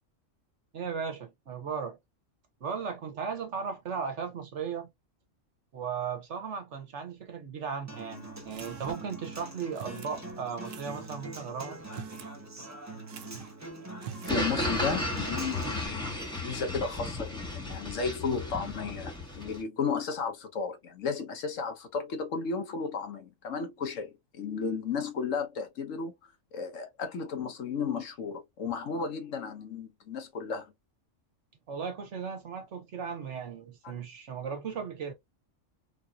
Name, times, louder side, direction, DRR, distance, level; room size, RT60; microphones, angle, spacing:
voice 1, 0.7-2.0 2.6-4.9 5.7-11.8 31.7-35.1, right 6 dB, 70° right, 1.3 m, -36 dB
Human voice / Acoustic guitar, 7.9-15.9, right 2 dB, 15° right, 0.7 m, -43 dB
sound 1, 8.5-9.2 9.7-10.2 10.6-11.1 11.8-12.3 12.6-12.7 13.1-13.6 13.9-14.4, right 9 dB, 85° right, 1.0 m, -45 dB
voice 2, 14.2-26.1 26.5-30.7, left 5 dB, 80° left, 1.3 m, -34 dB
sound 2, 14.3-19.6, left 2 dB, 5° left, 1.2 m, -34 dB
3.7 x 2.8 x 2.4 m
omnidirectional pair, 1.3 m